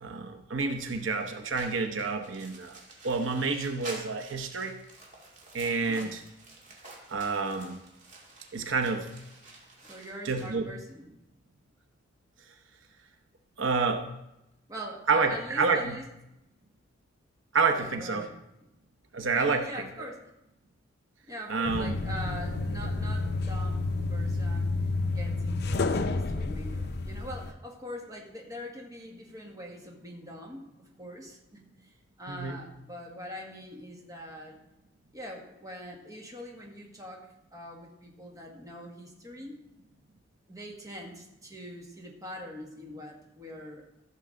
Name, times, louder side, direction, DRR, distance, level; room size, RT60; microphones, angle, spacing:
voice 1, 0.0-2.8 3.0-4.8 5.5-6.2 7.1-7.8 8.5-9.1 10.2-10.7 13.6-14.1 15.1-16.0 17.5-18.3 19.1-19.9 21.5-22.0 32.3-32.6, right 4 dB, 85° right, 6 dB, 0.9 m, -28 dB
sound 1, 0.7-10.5, right 2 dB, 40° right, 2.3 m, -49 dB
voice 2, 5.8-6.2 9.8-11.1 14.7-16.0 17.7-18.4 19.4-20.2 21.3-24.7 25.1-34.6 35.1-39.6 40.5-44.0, equal, 20° right, 0 dB, 1.7 m, -43 dB
sound 2, 21.6-27.5, left 3 dB, 60° left, 0.6 m, -30 dB
15.0 x 6.9 x 3.9 m, 0.88 s
head